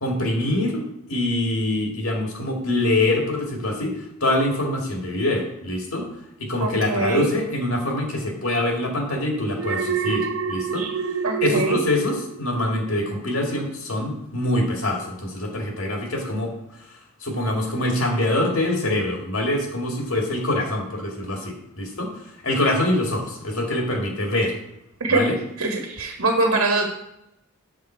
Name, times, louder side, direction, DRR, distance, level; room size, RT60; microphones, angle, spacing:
voice 1, 0.0-6.0 6.4-10.8 11.4-16.8 17.2-22.1 22.4-24.6 25.1-25.3, left 1 dB, 70° left, 0 dB, 2.2 m, -24 dB
voice 2, 6.6-7.3 10.8-10.9 11.2-11.8 25.0-25.3 25.6-26.8, right 2 dB, 80° right, 0 dB, 1.6 m, -23 dB
Alarm, 9.6-12.9 13.3-13.6, right 6 dB, 60° right, 0.5 m, -27 dB
7.4 x 7.1 x 4.5 m, 0.81 s
head